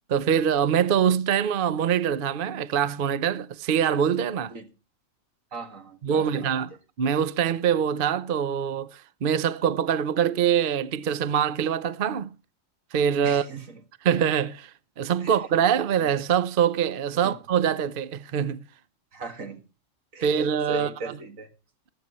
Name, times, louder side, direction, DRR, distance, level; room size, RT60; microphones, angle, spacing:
voice 1, 0.1-4.5 6.0-6.7 7.0-12.3 12.9-13.4 14.0-14.7 15.0-18.7 20.2-21.1, right 8 dB, 50° right, 0.7 m, -24 dB
voice 2, 5.5-6.5 13.2-13.8 15.2-15.3 16.0-16.1 17.1-17.4 19.1-19.6 20.1-20.4 20.7-21.5, right 3 dB, 80° right, 2.2 m, -38 dB
15.0 x 12.0 x 3.0 m
omnidirectional pair, 1.4 m